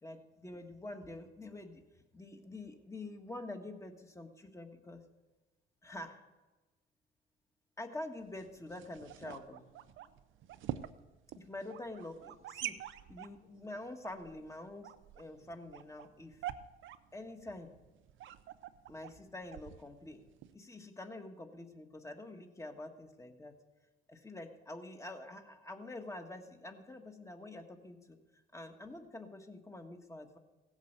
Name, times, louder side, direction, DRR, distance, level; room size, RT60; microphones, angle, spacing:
voice 1, 0.0-1.9 2.1-5.0 5.8-6.2 7.8-9.8 11.4-12.8 13.1-16.4 17.1-17.8 18.9-20.2 20.5-23.6 24.1-28.2 28.5-30.4, left 2 dB, 15° left, 5 dB, 1.6 m, -46 dB
sound 1, 8.2-20.5, right 12 dB, 75° right, 0.7 m, -47 dB
16.5 x 8.1 x 6.7 m, 1.2 s
cardioid pair, 90°, 20 cm